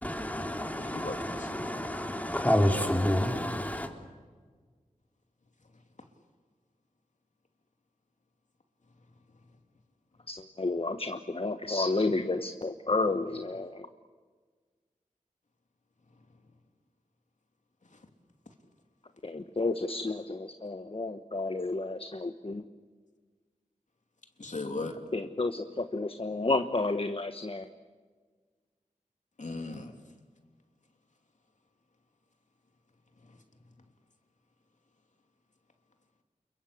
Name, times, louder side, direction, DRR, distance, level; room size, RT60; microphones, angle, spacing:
voice 1, 0.0-3.9, left 1 dB, 10° left, 4 dB, 3.6 m, -29 dB
voice 2, 0.8-1.6 24.4-25.0 29.4-29.9, left 3 dB, 60° left, 4 dB, 3.2 m, -37 dB
voice 3, 10.3-13.9 19.2-22.6 25.1-27.7, left 2 dB, 40° left, 9 dB, 1.3 m, -31 dB
28.5 x 22.5 x 8.7 m, 1.5 s
wide cardioid pair, 50°, 14 cm